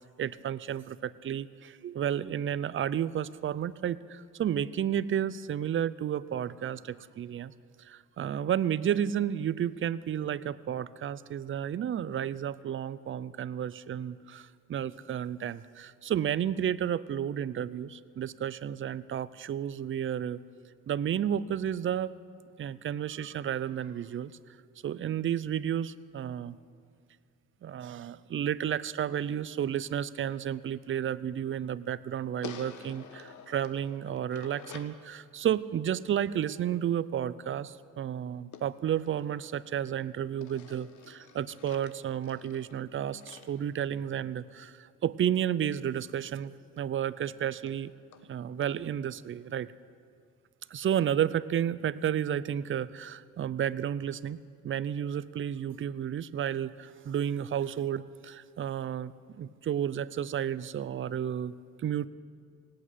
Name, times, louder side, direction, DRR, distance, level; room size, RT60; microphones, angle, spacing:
voice 1, 0.2-7.5 7.8-20.4 20.9-22.1 22.6-24.3 24.8-26.5 27.6-47.9 48.3-49.7 50.7-54.4 54.6-59.1 59.4-62.1, right 9 dB, 45° right, 17 dB, 0.5 m, -32 dB
sound 1, 32.4-35.0 38.5-39.9 40.4-44.5 46.4-46.5 46.8-46.9 47.3-47.4 47.7-47.8 48.1-48.3 48.6-48.7, left 7 dB, 75° left, 1.2 m, -50 dB
18.0 x 8.7 x 9.2 m, 2.2 s
cardioid pair, 90°, 30 cm